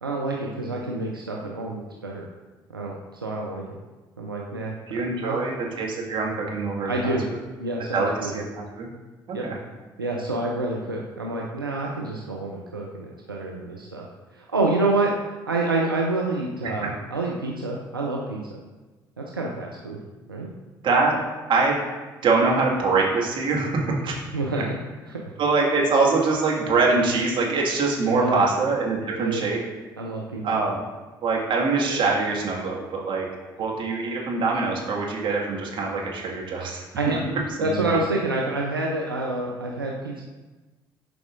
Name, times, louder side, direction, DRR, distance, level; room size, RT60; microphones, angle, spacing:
voice 1, 0.0-2.3 2.7-3.6 4.2-5.4 6.9-7.2 7.6-8.4 9.3-9.4 10.0-14.0 14.3-15.1 15.5-18.6 19.2-20.0 20.3-20.5 24.3-24.7 25.1-25.2 28.1-28.4 29.1-29.4 30.0-30.4 31.9-32.0 37.0-37.2 37.6-40.2, right 2 dB, 85° right, -1 dB, 0.5 m, -28 dB
voice 2, 4.9-7.2 7.9-8.9 9.3-9.5 20.8-21.2 21.5-21.8 22.2-24.1 25.4-29.6 30.4-30.8 31.2-33.3 33.6-36.8 37.6-37.8, right 3 dB, 45° right, -2 dB, 1.7 m, -23 dB
11.0 x 4.7 x 2.5 m, 1.2 s
figure-of-eight pair, 50°, 11 cm